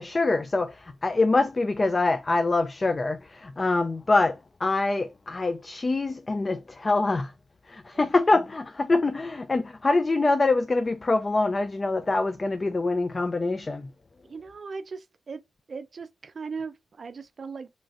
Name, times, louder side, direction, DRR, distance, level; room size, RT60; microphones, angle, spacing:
voice 1, 0.0-7.3 7.7-13.9, left 3 dB, 35° left, 0.3 m, -25 dB
voice 2, 14.2-15.4 15.7-17.7, right 5 dB, 55° right, 0.4 m, -38 dB
3.1 x 2.4 x 2.3 m
supercardioid pair, 50°, 0 cm